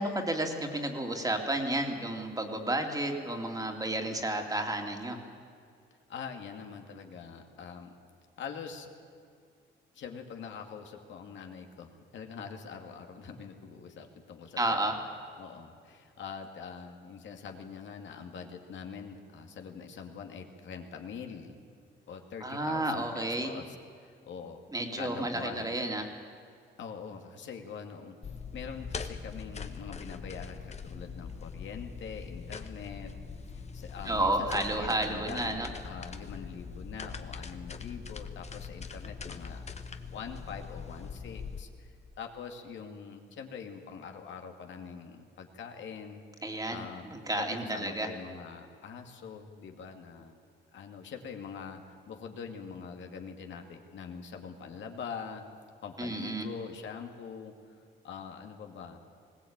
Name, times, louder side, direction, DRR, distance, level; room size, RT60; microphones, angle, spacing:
voice 1, 0.0-5.2 14.6-15.0 22.4-23.5 24.7-26.1 34.1-35.7 46.4-46.8 47.1-48.1 56.0-56.5, right 1 dB, 20° right, 3 dB, 2.7 m, -31 dB
voice 2, 6.1-7.9 8.4-8.9 9.9-15.0 15.4-21.6 22.1-23.7 24.0-24.6 24.9-25.8 26.8-33.1 33.5-39.6 40.1-46.2 46.7-47.1 47.4-50.4 50.7-55.4 55.8-57.8 58.0-59.0, left 6 dB, 70° left, 4 dB, 2.3 m, -44 dB
sound 1, 28.2-41.6, left 5 dB, 35° left, 1.4 m, -42 dB
20.5 x 17.5 x 8.8 m, 2.3 s
cardioid pair, 90°, 20 cm